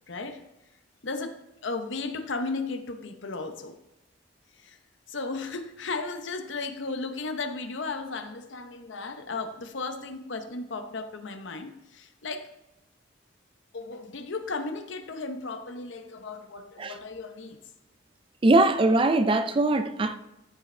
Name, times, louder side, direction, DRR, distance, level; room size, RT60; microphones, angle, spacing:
voice 1, 0.1-0.5 1.0-3.8 4.5-4.8 5.1-12.5 13.7-17.6, left 3 dB, 70° left, 0.8 m, -35 dB
voice 2, 18.4-20.2, right 2 dB, 25° right, 0.4 m, -21 dB
13.5 x 5.0 x 3.3 m
head